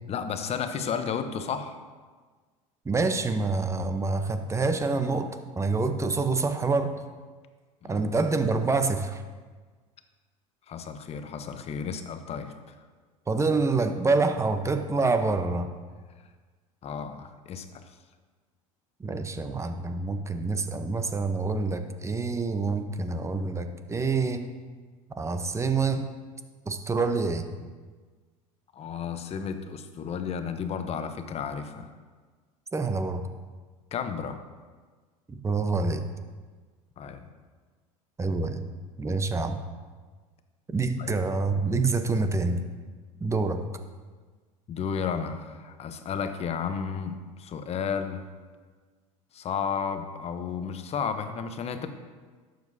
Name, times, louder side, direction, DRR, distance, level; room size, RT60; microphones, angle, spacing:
voice 1, 0.1-1.8 7.8-8.1 10.7-12.8 16.8-17.8 28.7-31.9 33.9-34.4 37.0-37.3 41.0-41.2 44.7-48.2 49.3-51.9, left 6 dB, 35° left, 8 dB, 0.9 m, -33 dB
voice 2, 2.8-5.3 5.6-7.0 7.9-9.2 13.3-15.7 19.0-24.5 25.2-26.1 26.7-27.5 32.7-33.2 35.3-36.0 38.2-38.6 39.0-39.6 40.7-42.6 43.2-43.7, right 3 dB, 15° right, 8 dB, 0.8 m, -26 dB
11.5 x 7.8 x 2.8 m, 1.4 s
hypercardioid pair, 85°, 18 cm